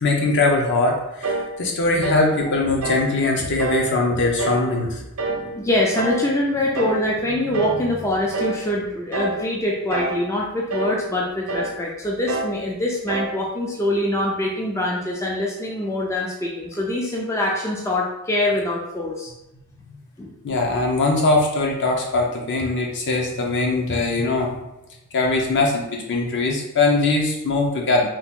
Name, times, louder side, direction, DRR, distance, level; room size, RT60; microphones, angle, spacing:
voice 1, 0.0-5.0 20.4-24.6 25.1-28.1, left 2 dB, 55° left, 0 dB, 0.7 m, -21 dB
sound 1, 1.2-1.5 2.0-2.3 2.8-3.1 3.6-3.9 4.4-4.7 5.2-5.5 6.0-6.3 6.8-7.0 7.5-7.9 8.3-8.6 9.1-9.4 9.9-10.3 10.7-11.0 11.5-11.8 12.3-12.6 13.1-13.4, right 2 dB, 70° right, 0.5 m, -26 dB
voice 2, 5.3-19.3 20.2-20.3, left 1 dB, 15° left, -3 dB, 0.3 m, -24 dB
2.9 x 2.4 x 3.5 m, 0.92 s
head